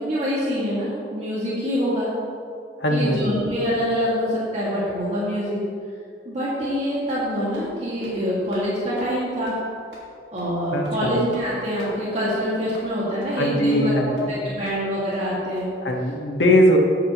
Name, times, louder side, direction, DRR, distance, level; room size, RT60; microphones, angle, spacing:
voice 1, 0.0-2.1 2.9-5.6 6.3-9.5 10.3-15.7, equal, 40° right, -8 dB, 2.2 m, -25 dB
voice 2, 2.8-3.5 10.7-11.2 13.4-14.3 15.8-16.8, equal, 80° left, 0 dB, 1.6 m, -20 dB
sound 1, 6.6-6.7 7.1-7.2 7.5-7.7 8.0-8.2 8.5-8.7 9.0-9.1 9.5-9.6 9.9-10.1 10.4-10.5 10.8-11.0 11.3-11.5 11.8-11.9 12.3-12.4 12.7-12.9 13.2-13.3 13.7-13.8 14.2-14.3 14.6-14.8 15.1-15.2 15.6-15.7, right 1 dB, 90° right, 2.4 m, -44 dB
14.0 x 9.1 x 3.1 m, 2.4 s
head